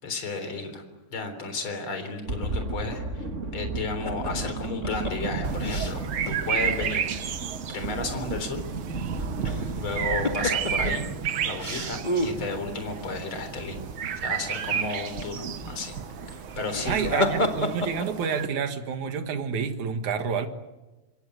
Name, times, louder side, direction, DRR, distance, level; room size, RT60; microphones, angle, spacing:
voice 1, 0.0-0.8 1.1-3.2 3.5-7.4 7.7-8.6 9.7-11.0 11.4-13.8 14.2-16.0 16.3-17.3, left 3 dB, 45° left, 7 dB, 4.4 m, -33 dB
sound 1, 2.3-18.0, right 3 dB, 25° right, 2.1 m, -35 dB
sound 2, 4.0-6.4 6.7-6.8 9.2-9.8 10.2-10.9 11.6-12.4 16.5-18.3, left 1 dB, 20° left, 1.6 m, -30 dB
sound 3, 5.4-18.5, right 8 dB, 55° right, 1.7 m, -32 dB
voice 2, 16.8-20.5, right 6 dB, 80° right, 8 dB, 3.1 m, -29 dB
27.0 x 25.0 x 8.1 m, 1.1 s
omnidirectional pair, 3.4 m